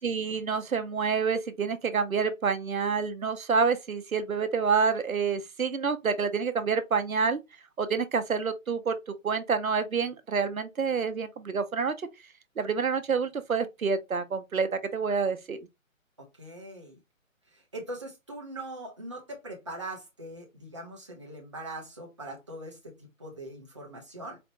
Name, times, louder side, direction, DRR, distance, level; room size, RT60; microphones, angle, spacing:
voice 1, 0.0-7.4 7.8-9.0 9.2-12.1 12.6-15.6, right 5 dB, 85° right, 0.7 m, -28 dB
voice 2, 16.2-17.0 17.5-24.4, right 1 dB, 25° right, 0.5 m, -41 dB
4.1 x 2.1 x 2.7 m
figure-of-eight pair, 145°, 41 cm